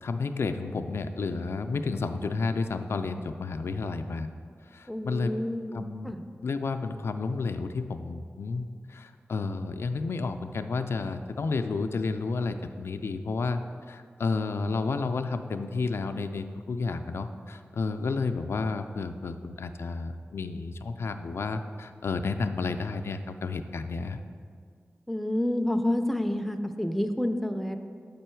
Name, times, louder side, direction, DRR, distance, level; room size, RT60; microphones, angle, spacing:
voice 1, 0.0-4.3 4.7-5.3 5.7-6.1 6.4-13.6 13.9-24.2, left 4 dB, 75° left, 8 dB, 0.4 m, -31 dB
voice 2, 4.9-6.2 25.1-27.8, left 1 dB, ahead, 6 dB, 0.4 m, -29 dB
6.7 x 5.5 x 4.5 m, 2.1 s
wide cardioid pair, 70°, 4 cm